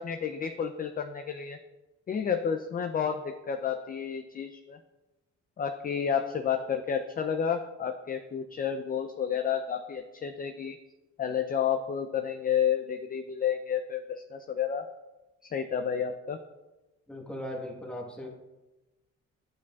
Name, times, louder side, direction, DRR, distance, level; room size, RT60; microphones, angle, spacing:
voice 1, 0.0-1.6 2.1-4.8 5.6-10.8 11.2-14.8 15.5-16.4, left 7 dB, 30° left, 7 dB, 0.4 m, -30 dB
voice 2, 17.1-18.3, left 1 dB, 5° left, 0 dB, 1.2 m, -38 dB
9.4 x 4.9 x 2.3 m, 1.1 s
cardioid pair, 90°, 30 cm